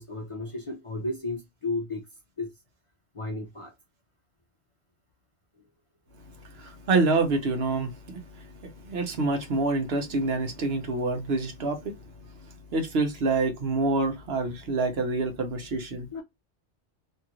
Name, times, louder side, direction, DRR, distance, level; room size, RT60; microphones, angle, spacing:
voice 1, 0.0-2.0 2.4-2.5 3.1-3.7 16.1-16.2, left 2 dB, 40° left, 0.5 m, -33 dB
voice 2, 6.2-16.1, right 3 dB, 65° right, 1.0 m, -27 dB
2.8 x 2.4 x 2.8 m
omnidirectional pair, 1.2 m